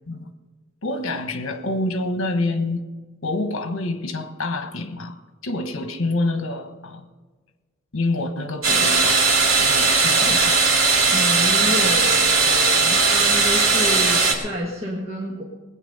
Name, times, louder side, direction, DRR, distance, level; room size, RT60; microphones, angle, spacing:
voice 1, 0.8-2.8 3.2-5.2 5.4-7.1 7.9-9.3 9.6-10.6, left 2 dB, 65° left, 8 dB, 1.3 m, -27 dB
sound 1, 8.6-14.3, right 4 dB, 75° right, 2.4 m, -18 dB
voice 2, 11.1-15.4, equal, 30° right, -3 dB, 1.6 m, -29 dB
20.0 x 8.8 x 5.5 m, 1.3 s
head